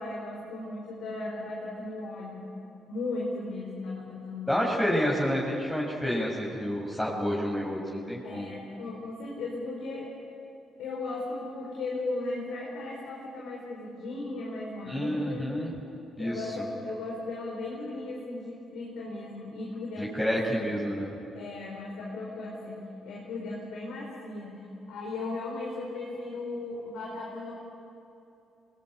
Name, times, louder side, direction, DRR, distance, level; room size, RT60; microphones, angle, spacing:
voice 1, 0.0-2.4 2.9-4.7 8.2-10.1 10.8-15.5 16.2-20.7 21.3-24.6 24.9-27.5, left 2 dB, 70° left, -3 dB, 4.7 m, -36 dB
voice 2, 4.5-8.5 14.9-15.7 16.2-16.4 20.0-21.1, equal, 15° left, -4 dB, 5.6 m, -29 dB
26.0 x 20.5 x 10.0 m, 2.9 s
hypercardioid pair, 45°, 0 cm